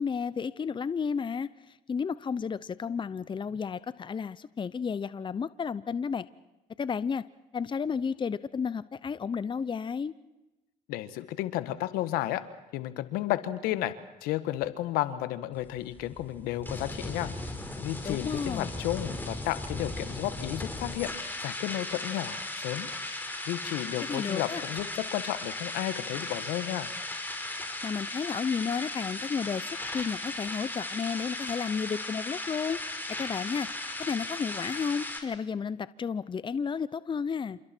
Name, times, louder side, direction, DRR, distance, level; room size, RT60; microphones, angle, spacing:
voice 1, 0.0-6.3 6.8-7.2 7.5-10.1 18.0-18.7 24.0-24.6 27.8-32.8 33.2-33.7 34.0-37.6, left 6 dB, 30° left, 16 dB, 0.8 m, -32 dB
voice 2, 10.9-12.4 12.7-13.9 14.2-17.3 17.8-22.9 23.5-26.9, left 14 dB, 80° left, 12 dB, 1.5 m, -32 dB
sound 1, 15.5-35.2, left 2 dB, 15° left, 5.0 m, -37 dB
28.5 x 28.0 x 4.5 m, 1.0 s
supercardioid pair, 70°, 15 cm